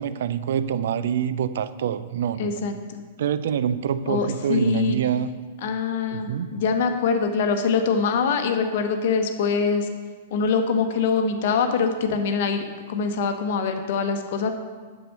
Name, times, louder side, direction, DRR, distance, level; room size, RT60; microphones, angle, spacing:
voice 1, 0.0-2.5 3.2-5.3 6.1-6.5, right 8 dB, 60° right, 14 dB, 0.4 m, -25 dB
voice 2, 2.4-3.0 4.1-5.0 5.6-9.9 10.3-14.5, left 5 dB, 50° left, 6 dB, 0.9 m, -24 dB
7.6 x 5.6 x 5.5 m, 1.5 s
figure-of-eight pair, 105°, 0 cm